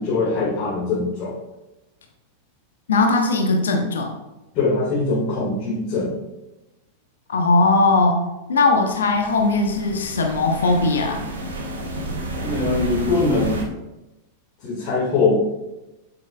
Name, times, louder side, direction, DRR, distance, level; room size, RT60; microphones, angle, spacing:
voice 1, 0.0-1.3 4.5-6.1 12.4-13.6 14.6-15.3, left 3 dB, 40° left, -6 dB, 1.9 m, -22 dB
voice 2, 2.9-4.1 7.3-8.2 8.5-11.2, left 3 dB, 65° left, 3 dB, 1.0 m, -19 dB
sound 1, 8.8-13.6, right 1 dB, 70° right, 1.3 m, -31 dB
7.9 x 7.5 x 2.3 m, 1.0 s
figure-of-eight pair, 90°, 0 cm